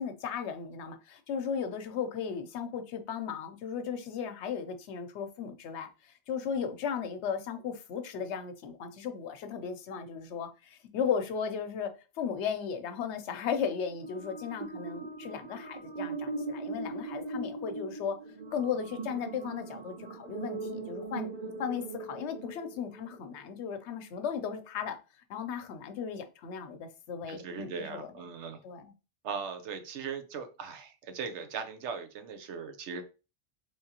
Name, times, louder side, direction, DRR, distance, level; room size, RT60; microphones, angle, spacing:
voice 1, 0.0-11.9 12.2-18.2 18.5-21.3 21.6-25.0 25.3-28.1 28.6-28.9, left 7 dB, 85° left, 0.9 m, -36 dB
sound 1, 13.9-23.2, right 3 dB, 55° right, 0.6 m, -40 dB
voice 2, 27.3-28.6 29.2-33.0, right 6 dB, 85° right, 1.0 m, -39 dB
3.5 x 3.2 x 2.8 m
omnidirectional pair, 1.1 m